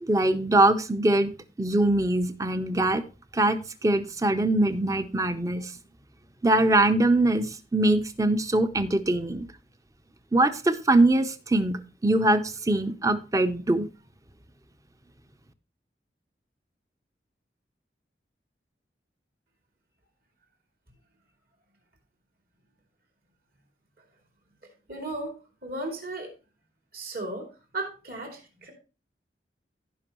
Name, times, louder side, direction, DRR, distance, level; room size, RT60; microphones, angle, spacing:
voice 1, 0.0-3.0 3.3-5.7 6.4-9.5 10.3-13.9, right 2 dB, 20° right, 11 dB, 0.6 m, -23 dB
voice 2, 24.9-26.3 26.9-27.5 27.7-28.7, right 2 dB, 55° right, 2 dB, 2.8 m, -35 dB
16.0 x 5.4 x 3.0 m, 0.32 s
head